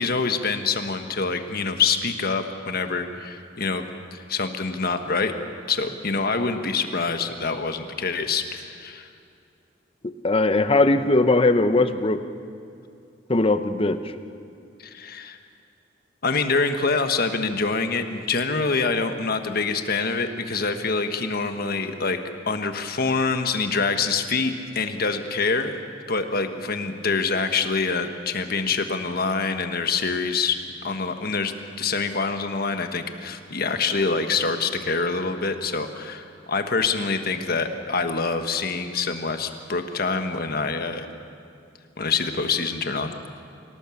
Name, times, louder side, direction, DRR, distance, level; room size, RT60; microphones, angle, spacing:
voice 1, 0.0-5.3 5.7-9.1 14.8-15.4 16.2-22.2 22.5-25.7 26.1-30.6 30.8-41.0 42.0-43.1, left 4 dB, 55° left, 7 dB, 1.4 m, -25 dB
voice 2, 10.0-12.2 13.3-14.0, left 2 dB, 30° left, 10 dB, 0.8 m, -20 dB
25.0 x 17.5 x 7.2 m, 2.4 s
head